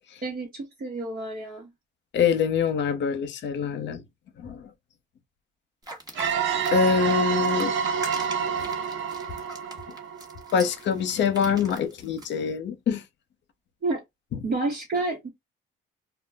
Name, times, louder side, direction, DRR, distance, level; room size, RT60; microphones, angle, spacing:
voice 1, 0.2-1.7 13.8-14.0 14.4-15.3, right 2 dB, 45° right, 1.0 m, -29 dB
voice 2, 2.1-4.0 4.4-4.7 6.7-7.7 10.5-13.0 14.3-14.4, left 7 dB, 65° left, 0.7 m, -24 dB
sound 1, 5.8-12.3, right 1 dB, 20° right, 1.0 m, -42 dB
sound 2, 6.1-10.7, right 7 dB, 75° right, 0.5 m, -28 dB
2.3 x 2.1 x 3.4 m
cardioid pair, 90°, 20 cm